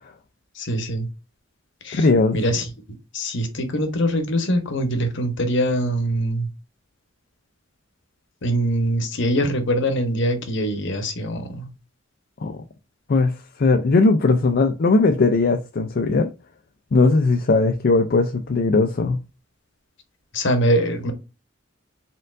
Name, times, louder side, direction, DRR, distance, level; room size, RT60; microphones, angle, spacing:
voice 1, 0.5-1.1 1.8-2.1 2.3-2.7 3.1-6.5 8.4-11.7 20.3-21.1, equal, 65° left, 1.0 m, -23 dB
voice 2, 1.9-2.4 12.4-12.6 13.1-13.3 13.6-16.3 16.9-19.2, left 3 dB, 50° left, 0.4 m, -18 dB
4.4 x 3.8 x 2.5 m
head